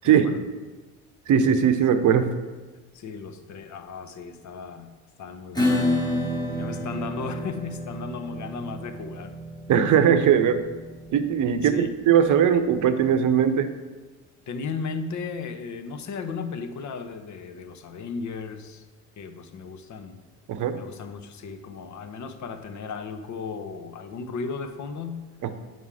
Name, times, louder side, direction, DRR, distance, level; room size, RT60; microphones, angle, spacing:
voice 1, 0.0-0.4 2.9-4.9 5.2-5.9 6.5-9.3 11.6-11.9 14.5-18.9 19.2-20.2 20.7-25.2, left 5 dB, 40° left, 8 dB, 1.0 m, -35 dB
voice 2, 1.3-2.3 9.7-10.6 11.1-13.7 20.5-20.8 25.4-25.5, right 8 dB, 45° right, 10 dB, 0.9 m, -20 dB
Acoustic guitar / Strum, 5.5-12.8, left 1 dB, 10° left, 2.4 m, -30 dB
7.6 x 5.4 x 4.9 m, 1.3 s
hypercardioid pair, 70°, 43 cm